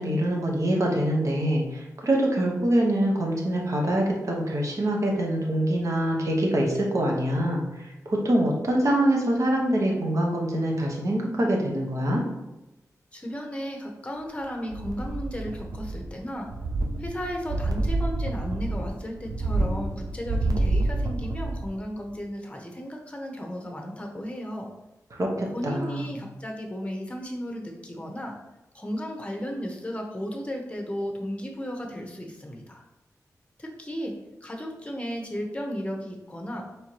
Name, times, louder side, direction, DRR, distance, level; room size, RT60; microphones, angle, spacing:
voice 1, 0.0-12.2 25.2-26.0, right 1 dB, 55° right, -1 dB, 1.0 m, -25 dB
voice 2, 13.1-16.5 17.0-24.7 25.5-28.3 28.7-32.8 33.6-34.1 34.4-36.7, equal, 20° left, 1 dB, 0.9 m, -34 dB
sound 1, 14.7-16.1 16.4-21.7 22.1-22.2, right 2 dB, 75° right, 0.5 m, -28 dB
4.6 x 3.3 x 2.9 m, 0.98 s
wide cardioid pair, 75°, 6 cm